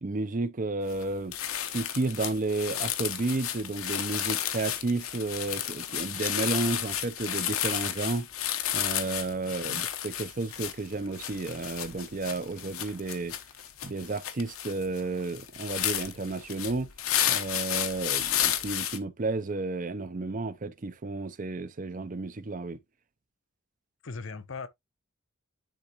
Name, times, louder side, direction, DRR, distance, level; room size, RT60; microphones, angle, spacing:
voice 1, 0.0-1.4 1.7-8.3 8.7-13.3 13.8-16.9 17.2-22.8, right 3 dB, 40° right, 0.5 m, -32 dB
sound 1, 0.9-1.0 1.3-19.0, left 11 dB, 80° left, 1.0 m, -32 dB
voice 2, 9.4-9.8 24.0-24.7, left 4 dB, 60° left, 0.8 m, -40 dB
10.0 x 3.7 x 2.9 m
head